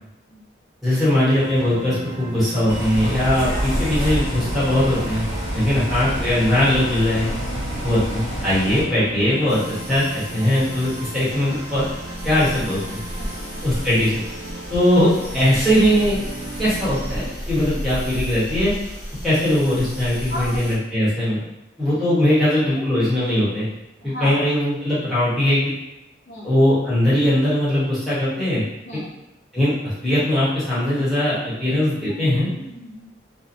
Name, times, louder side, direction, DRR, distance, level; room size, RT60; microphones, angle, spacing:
voice 1, 0.8-5.3 5.5-7.3 7.8-9.6 9.9-11.8 12.2-13.0 13.6-14.1 14.7-16.2 16.6-18.7 19.2-21.4 21.8-23.7 24.0-25.6 26.4-28.6 28.9-29.0 29.5-32.5, left 1 dB, ahead, -11 dB, 0.9 m, -20 dB
sound 1, 1.3-17.3, right 1 dB, 70° right, 0.6 m, -36 dB
Bus, 2.7-8.8, equal, 75° left, 1.2 m, -27 dB
sound 2, 9.5-20.7, equal, 30° left, 1.1 m, -33 dB
voice 2, 13.1-13.5 20.3-20.7 22.2-23.0 24.0-24.5 26.3-26.5 28.8-29.1 31.9-33.0, equal, 55° left, -10 dB, 0.7 m, -36 dB
2.8 x 2.0 x 2.6 m, 0.90 s
head